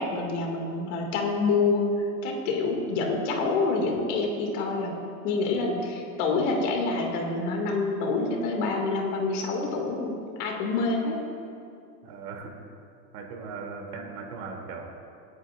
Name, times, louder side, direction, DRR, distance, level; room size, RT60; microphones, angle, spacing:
voice 1, 0.0-4.9 5.2-10.1 10.4-11.2, left 3 dB, 55° left, 1 dB, 2.2 m, -27 dB
voice 2, 12.0-12.5 13.1-14.9, right 4 dB, 85° right, 0 dB, 2.8 m, -38 dB
25.5 x 9.4 x 2.5 m, 2.6 s
supercardioid pair, 180°, 44 cm